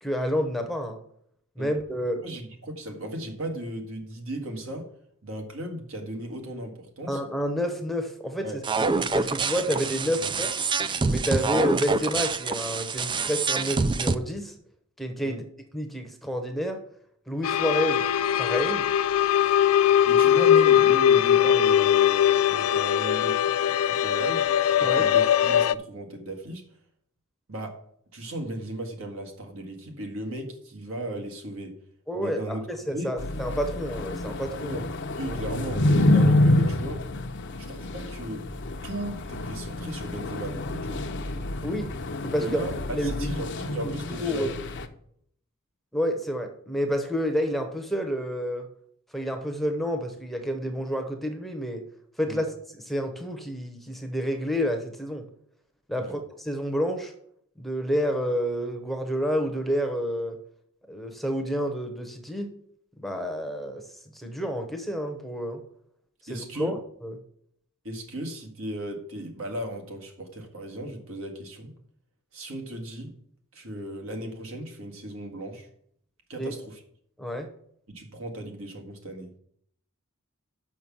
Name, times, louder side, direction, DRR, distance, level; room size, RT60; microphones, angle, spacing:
voice 1, 0.0-1.0 1.6-2.2 7.1-8.5 9.0-10.5 11.1-14.5 15.0-15.4 15.7-16.8 17.3-18.0 18.4-18.9 24.8-25.1 32.1-34.8 35.2-35.4 41.6-41.9 42.2-42.6 42.9-43.7 44.1-44.5 45.9-48.7 49.1-51.8 52.2-52.5 52.7-55.2 55.9-57.1 57.6-60.4 60.9-62.5 63.0-63.8 64.1-65.6 66.3-67.1 76.4-76.5 77.2-77.5, equal, ahead, 6 dB, 0.9 m, -29 dB
voice 2, 2.2-4.9 5.2-7.2 8.4-8.6 15.2-15.4 20.1-24.5 24.8-26.6 27.5-27.8 28.1-31.8 32.1-32.6 32.9-33.2 34.6-34.8 35.2-37.0 37.6-38.4 38.8-41.0 42.4-44.5 52.3-52.4 56.0-56.2 66.3-66.8 67.8-71.7 72.3-73.1 73.5-75.7 76.3-76.8 77.9-79.4, right 1 dB, 70° right, 3 dB, 1.8 m, -36 dB
sound 1, 8.6-14.1, right 4 dB, 20° right, 0.4 m, -26 dB
sound 2, 17.4-25.8, left 10 dB, 75° left, 0.4 m, -21 dB
sound 3, 33.2-44.9, left 1 dB, 55° left, 0.7 m, -27 dB
6.2 x 6.0 x 7.0 m, 0.67 s
head